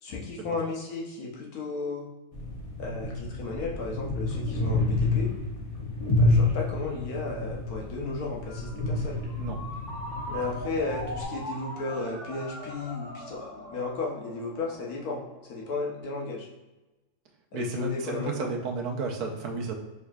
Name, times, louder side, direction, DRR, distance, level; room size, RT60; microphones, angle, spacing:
voice 1, 0.0-2.0 2.8-5.3 6.1-9.2 10.3-16.5 17.5-18.5, left 3 dB, 75° left, -2 dB, 1.4 m, -34 dB
sound 1, 2.3-11.2, left 2 dB, 35° left, 0.6 m, -29 dB
Ringtone, 8.5-16.0, equal, 55° left, 1.3 m, -41 dB
voice 2, 17.5-19.7, right 3 dB, 90° right, 2 dB, 1.3 m, -32 dB
4.5 x 3.8 x 2.4 m, 1.1 s
omnidirectional pair, 1.6 m